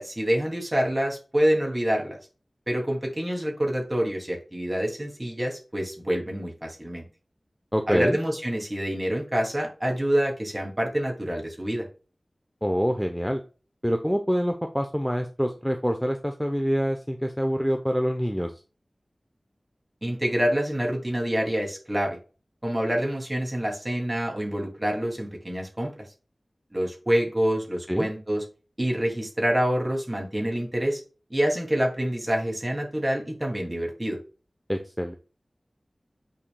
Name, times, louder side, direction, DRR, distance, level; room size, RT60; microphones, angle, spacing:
voice 1, 0.0-2.2 2.7-7.0 7.9-11.9 20.0-22.2 22.6-25.9 26.7-28.4 28.8-31.0 31.3-34.2, equal, 25° right, 1 dB, 2.8 m, -26 dB
voice 2, 7.7-8.2 12.6-13.4 13.8-18.5 27.9-28.1 34.7-35.1, equal, ahead, 4 dB, 0.8 m, -26 dB
8.7 x 5.1 x 2.3 m, 0.34 s
wide cardioid pair, 55°, 0 cm